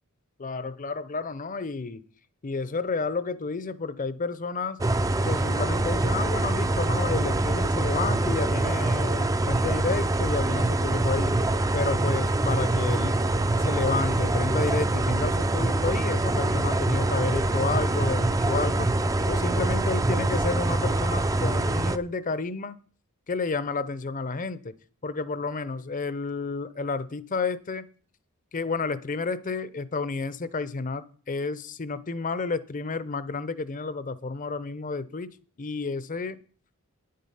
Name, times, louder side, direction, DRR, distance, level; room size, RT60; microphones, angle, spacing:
voice 1, 0.4-2.0 2.4-4.8 5.2-11.4 11.7-13.2 13.6-18.9 19.2-22.8 23.3-24.7 25.0-27.8 28.5-35.3 35.6-36.4, left 4 dB, 35° left, 0.6 m, -31 dB
sound 1, 4.8-22.0, right 2 dB, 15° right, 0.4 m, -24 dB
10.0 x 7.6 x 5.5 m
head